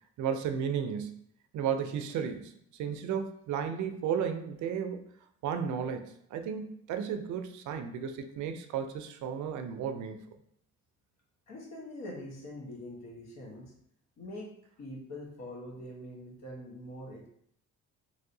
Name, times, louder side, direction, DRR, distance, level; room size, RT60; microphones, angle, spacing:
voice 1, 0.2-1.2 1.5-2.5 2.8-5.1 5.4-10.2, right 7 dB, 75° right, 7 dB, 0.5 m, -33 dB
voice 2, 11.5-13.7 14.2-14.5 14.8-17.2, left 1 dB, 65° left, -1 dB, 1.1 m, -43 dB
3.2 x 2.6 x 2.6 m, 0.70 s
cardioid pair, 90°, 30 cm